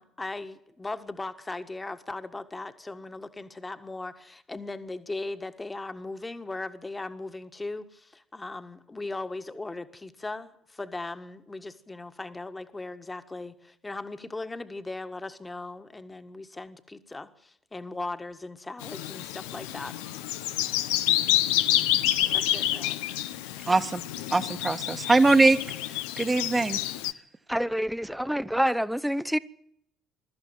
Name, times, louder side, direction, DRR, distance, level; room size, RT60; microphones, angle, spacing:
voice 1, 0.0-20.0 22.3-23.0, left 2 dB, 15° left, 1.7 m, -38 dB
Bird vocalization bird call bird song, 18.8-27.1, left 12 dB, 70° left, 0.8 m, -28 dB
voice 2, 23.7-24.0 24.3-25.6 25.9-26.8, right 3 dB, 25° right, 1.5 m, -22 dB
voice 3, 27.5-29.4, equal, ahead, 0.8 m, -27 dB
22.0 x 13.5 x 9.2 m
figure-of-eight pair, 55°, 0 cm